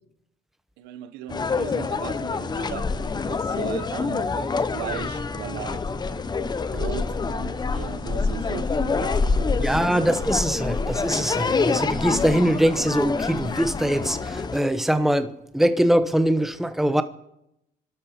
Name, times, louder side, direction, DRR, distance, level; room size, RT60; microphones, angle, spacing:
voice 1, 0.8-2.9 3.1-5.8 6.7-10.0, right 12 dB, 90° right, 0.9 m, -37 dB
sound 1, 1.3-14.6, left 4 dB, 25° left, 0.8 m, -26 dB
voice 2, 9.6-17.0, right 1 dB, ahead, 0.9 m, -22 dB
27.0 x 12.0 x 4.3 m
cardioid pair, 110°, 17 cm